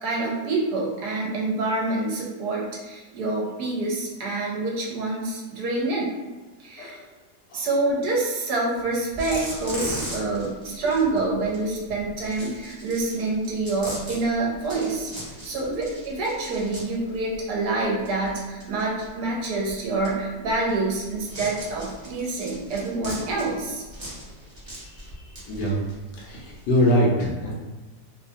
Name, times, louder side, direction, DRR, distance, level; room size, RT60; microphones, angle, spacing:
voice 1, 0.0-6.1 6.6-7.0 7.5-15.1 15.4-23.8, right 2 dB, 70° right, -3 dB, 1.1 m, -27 dB
sound 1, 8.8-8.9 9.1-26.9, right 1 dB, 25° right, 0.6 m, -39 dB
voice 2, 24.8-25.8 26.2-27.5, equal, 80° left, -3 dB, 1.3 m, -24 dB
3.2 x 2.2 x 2.6 m, 1.2 s
omnidirectional pair, 1.9 m